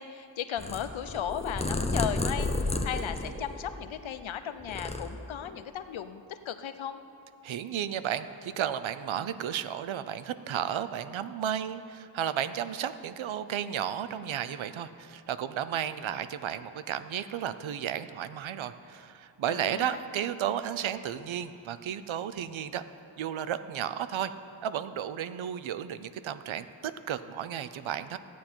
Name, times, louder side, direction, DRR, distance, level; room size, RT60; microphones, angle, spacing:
voice 1, 0.0-7.0 19.5-20.0, left 9 dB, 85° left, 10 dB, 0.7 m, -36 dB
Purr, 0.6-4.1 4.5-5.6, left 2 dB, 15° left, 0.6 m, -32 dB
voice 2, 7.4-22.8 23.2-24.3 24.6-28.2, right 9 dB, 85° right, 12 dB, 0.6 m, -33 dB
14.5 x 9.3 x 4.4 m, 2.7 s
wide cardioid pair, 100°, 46 cm